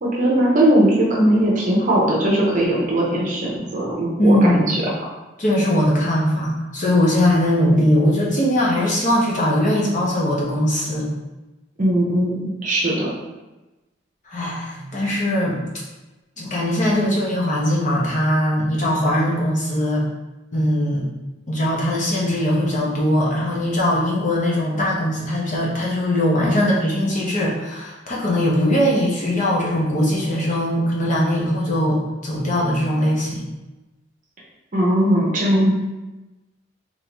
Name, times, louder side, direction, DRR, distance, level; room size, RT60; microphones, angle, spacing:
voice 1, 0.0-4.8 11.8-13.1 34.7-35.7, right 1 dB, 45° right, -3 dB, 0.8 m, -19 dB
voice 2, 4.2-4.7 5.4-11.1 14.3-15.6 16.4-20.0 20.5-21.1 21.5-33.5, left 1 dB, 40° left, -4 dB, 1.0 m, -20 dB
3.8 x 3.7 x 3.0 m, 1.1 s
head